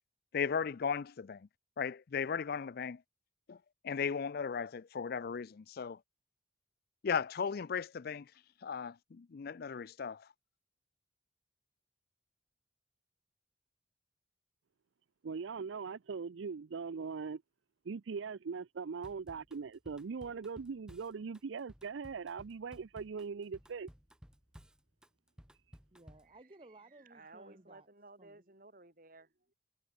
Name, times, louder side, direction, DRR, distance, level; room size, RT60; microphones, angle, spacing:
voice 1, 0.3-1.5 1.8-3.0 3.5-3.6 3.8-6.0 7.0-8.3 8.6-10.3, left 6 dB, 55° left, 0.4 m, -36 dB
voice 2, 15.2-17.4 17.9-23.9, right 5 dB, 75° right, 0.5 m, -41 dB
Drum kit / Drum, 19.0-26.3, equal, 5° right, 0.8 m, -57 dB
voice 3, 25.9-27.9 28.2-28.5, right 2 dB, 30° right, 1.2 m, -58 dB
voice 4, 27.0-29.5, right 2 dB, 45° right, 5.2 m, -56 dB
head